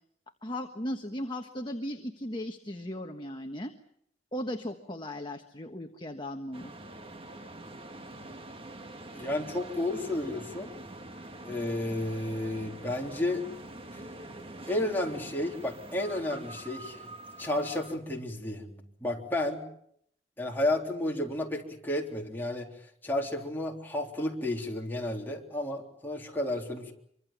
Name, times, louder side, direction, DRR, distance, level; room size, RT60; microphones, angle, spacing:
voice 1, 0.4-3.7 4.3-6.7, left 1 dB, 25° left, 4 dB, 1.4 m, -37 dB
sound 1, 6.5-18.0, right 1 dB, 30° right, 1.7 m, -45 dB
voice 2, 9.1-10.7 11.4-13.4 14.7-17.0 17.4-19.7 20.4-22.7 23.0-26.9, left 1 dB, 10° left, -1 dB, 3.7 m, -32 dB
25.5 x 24.5 x 7.5 m, 0.71 s
head